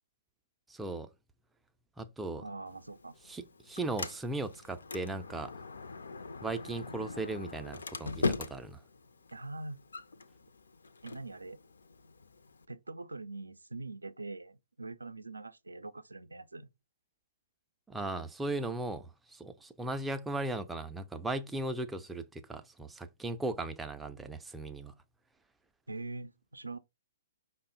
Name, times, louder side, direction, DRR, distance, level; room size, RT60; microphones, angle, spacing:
voice 1, 0.7-1.1 2.0-2.4 3.2-5.5 6.4-8.8 17.9-24.9, right 2 dB, 5° right, 0.4 m, -37 dB
voice 2, 2.4-3.1 9.3-9.8 11.0-11.6 12.7-16.7 25.9-26.8, right 2 dB, 75° right, 0.4 m, -43 dB
Sliding door, 2.7-12.7, left 3 dB, 65° left, 0.4 m, -41 dB
5.3 x 2.0 x 3.7 m
figure-of-eight pair, 120°, 0 cm